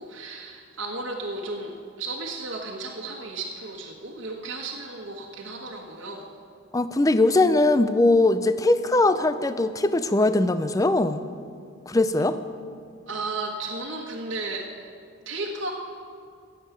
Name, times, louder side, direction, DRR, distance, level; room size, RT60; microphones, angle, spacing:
voice 1, 0.0-6.3 13.1-14.9 15.2-15.7, right 2 dB, 80° right, -3 dB, 1.5 m, -34 dB
voice 2, 6.7-11.2 11.9-12.4, left 2 dB, 15° left, 12 dB, 0.4 m, -21 dB
16.0 x 7.4 x 9.1 m, 2.3 s
head